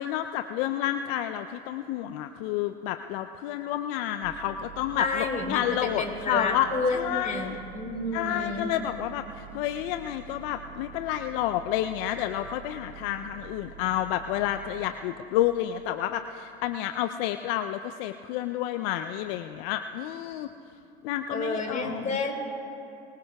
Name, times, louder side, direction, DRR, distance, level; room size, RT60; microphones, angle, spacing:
voice 1, 0.0-7.6 8.1-20.5 21.0-22.1, left 12 dB, 65° left, 8 dB, 0.6 m, -30 dB
sound 1, 4.2-14.9, right 8 dB, 45° right, 1.2 m, -46 dB
voice 2, 4.9-5.6 6.0-8.8 21.3-22.3, left 3 dB, 25° left, 2 dB, 3.7 m, -30 dB
24.0 x 21.0 x 2.3 m, 2.8 s
hypercardioid pair, 75°, 31 cm